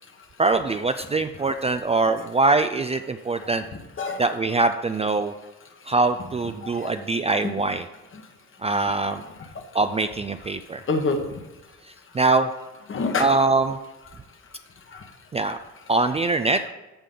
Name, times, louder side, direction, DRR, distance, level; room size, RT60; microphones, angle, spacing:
voice 1, 0.4-3.6 4.2-5.3 5.9-7.9 8.6-9.2 9.7-10.8 12.1-12.5 13.2-13.8 15.3-15.6 15.9-16.6, right 3 dB, 20° right, 8 dB, 0.4 m, -23 dB
voice 2, 6.6-6.9 7.4-7.5 8.1-8.2 9.4-9.7 10.9-11.4 12.9-13.3 14.1-14.2 14.5-15.1, left 3 dB, 40° left, 5 dB, 1.4 m, -28 dB
14.0 x 5.2 x 3.8 m, 1.1 s
cardioid pair, 90°, 30 cm